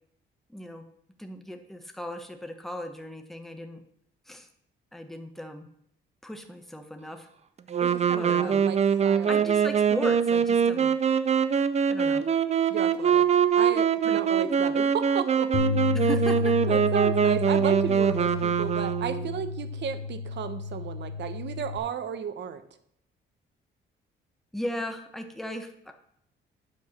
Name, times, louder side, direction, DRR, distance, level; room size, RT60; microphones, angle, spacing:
voice 1, 0.5-0.9 1.2-3.8 4.3-4.5 4.9-5.7 6.2-7.3 8.2-8.7 9.3-10.9 11.9-12.3 14.0-14.2 15.9-16.5 24.5-25.9, equal, ahead, 5 dB, 1.1 m, -37 dB
Wind instrument woodwind instrument, 7.7-19.4, right 7 dB, 35° right, 0.5 m, -23 dB
voice 2, 7.8-9.5 12.7-13.2 13.5-15.5 16.7-22.6, right 8 dB, 60° right, 10 dB, 0.9 m, -34 dB
Bass guitar, 15.5-21.8, left 4 dB, 80° left, 1.1 m, -31 dB
8.5 x 4.7 x 6.4 m, 0.71 s
cardioid pair, 90°, 20 cm